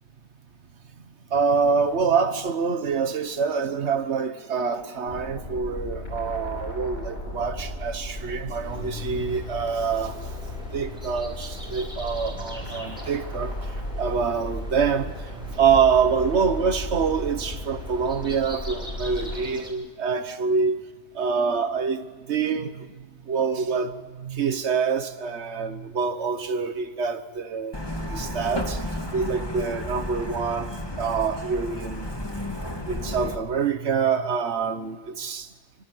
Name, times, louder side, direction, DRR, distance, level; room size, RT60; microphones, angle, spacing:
voice 1, 1.3-10.2 10.7-13.5 14.0-15.1 15.5-20.8 21.1-22.9 23.3-27.8 28.1-28.8 29.1-32.1 32.9-35.5, right 5 dB, 85° right, 1.5 m, -26 dB
sound 1, 5.1-19.4, left 1 dB, 65° left, 6.1 m, -35 dB
sound 2, 8.6-19.7, equal, 5° right, 6.8 m, -44 dB
Truck, 27.7-33.3, left 1 dB, 20° left, 2.5 m, -32 dB
26.5 x 25.5 x 8.0 m
omnidirectional pair, 1.1 m